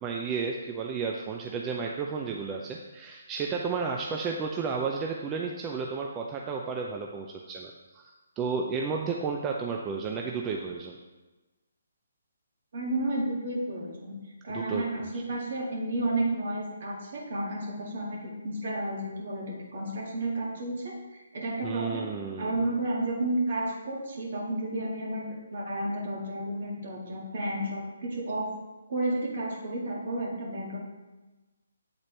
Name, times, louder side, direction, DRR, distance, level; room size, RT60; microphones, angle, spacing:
voice 1, 0.0-11.0 14.5-14.8 21.6-22.6, right 5 dB, 20° right, 0 dB, 0.4 m, -32 dB
voice 2, 12.7-14.2 14.4-22.1 22.4-28.5 28.9-30.8, right 1 dB, 55° right, -2 dB, 1.9 m, -32 dB
8.7 x 4.0 x 3.2 m, 1.1 s
figure-of-eight pair, 145°, 0 cm